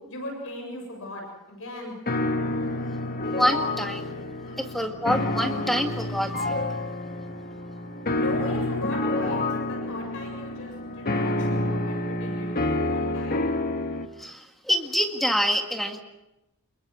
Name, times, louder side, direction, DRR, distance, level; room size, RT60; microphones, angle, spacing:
voice 1, 0.1-1.2 1.5-2.0 4.4-4.5 8.1-13.5, left 1 dB, 65° left, 2 dB, 7.4 m, -38 dB
sound 1, 2.1-14.1, left 2 dB, 45° left, 1.7 m, -28 dB
voice 2, 3.2-4.1 4.6-6.3 14.2-16.0, equal, ahead, 4 dB, 1.8 m, -26 dB
27.5 x 22.0 x 6.2 m, 0.96 s
head